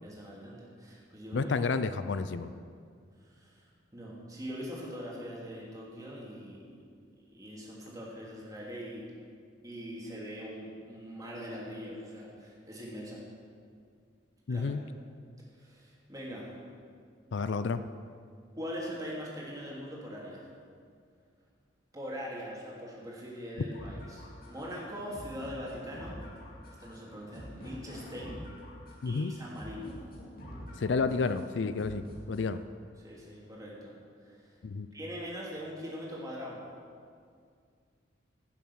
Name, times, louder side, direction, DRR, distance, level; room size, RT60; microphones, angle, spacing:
voice 1, 0.0-1.5 3.2-6.8 7.2-9.1 9.6-13.2 14.5-14.8 15.5-16.5 18.5-20.5 21.9-26.2 26.8-28.4 29.0-29.9 33.0-34.6 34.9-36.6, equal, 20° right, -5 dB, 2.8 m, -42 dB
voice 2, 1.3-2.5 14.5-14.8 17.3-17.8 29.0-29.3 30.8-32.6 34.6-34.9, left 4 dB, 70° left, 12 dB, 0.4 m, -30 dB
sound 1, 23.7-32.7, equal, 50° left, 2.4 m, -47 dB
16.5 x 7.2 x 6.3 m, 2.2 s
head